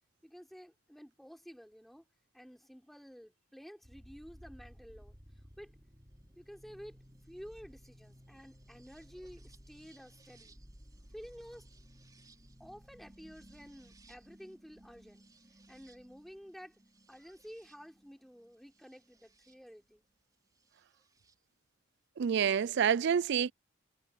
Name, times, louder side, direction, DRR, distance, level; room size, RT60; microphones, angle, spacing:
voice 1, 0.2-2.0 2.3-5.2 5.6-5.7 6.4-7.0 7.3-10.6 11.1-11.7 12.6-15.3 15.7-16.8 17.1-20.0, equal, ahead, 6.1 m, -52 dB
sound 1, 3.8-19.6 20.7-21.3, equal, 20° right, 3.9 m, -58 dB
voice 2, 22.2-23.5, right 7 dB, 60° right, 0.4 m, -28 dB
head